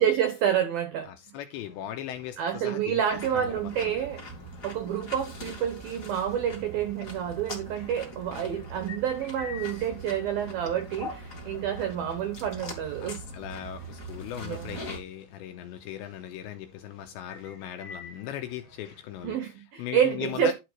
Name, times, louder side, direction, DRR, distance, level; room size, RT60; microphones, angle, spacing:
voice 1, 0.0-1.1 2.4-4.2 4.6-13.2 14.4-14.8 19.2-20.5, right 9 dB, 85° right, 2.1 m, -28 dB
voice 2, 1.1-3.9 13.0-19.4 19.8-20.5, left 11 dB, 85° left, 2.6 m, -38 dB
sound 1, 1.5-19.3, left 5 dB, 65° left, 1.2 m, -51 dB
sound 2, 3.1-15.0, right 1 dB, 30° left, 1.6 m, -42 dB
11.0 x 4.9 x 4.4 m
omnidirectional pair, 5.9 m